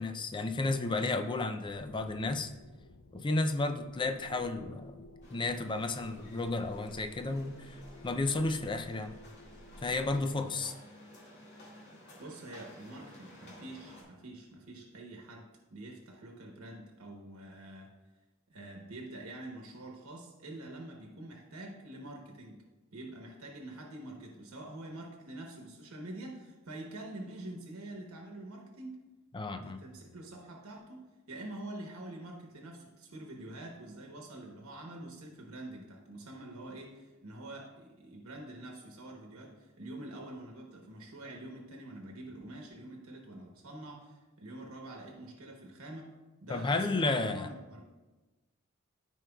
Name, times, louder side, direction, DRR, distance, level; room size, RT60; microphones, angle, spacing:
voice 1, 0.0-2.5 3.1-5.0 5.3-9.2 9.8-10.7 29.3-29.8 46.5-47.5, left 2 dB, 25° left, 7 dB, 0.4 m, -32 dB
sound 1, 1.7-10.2, left 1 dB, 75° left, 0.6 m, -54 dB
sound 2, 5.2-14.0, equal, 55° left, 2.0 m, -54 dB
voice 2, 12.2-17.9 18.5-22.6 22.9-29.1 29.6-46.1 46.4-47.9, right 1 dB, 85° right, 0 dB, 1.0 m, -46 dB
13.5 x 4.6 x 2.3 m, 1.2 s
head